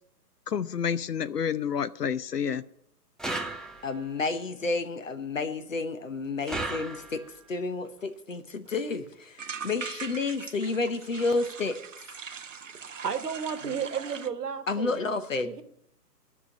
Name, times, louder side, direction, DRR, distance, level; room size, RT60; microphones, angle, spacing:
voice 1, 0.5-2.6, left 7 dB, 70° left, 15 dB, 0.8 m, -29 dB
sound 1, 3.2-4.1 6.5-7.4, right 2 dB, ahead, 0.4 m, -35 dB
voice 2, 3.8-7.2 7.5-11.8 14.7-15.5, left 3 dB, 50° left, 9 dB, 1.1 m, -30 dB
sound 2, 8.0-8.1 8.3-8.4 8.7-8.9 9.4-14.3, right 6 dB, 50° right, 0.7 m, -41 dB
voice 3, 12.9-15.0 15.4-15.6, right 7 dB, 70° right, 9 dB, 1.4 m, -33 dB
10.5 x 6.1 x 8.6 m, 0.73 s
hypercardioid pair, 175°, 48 cm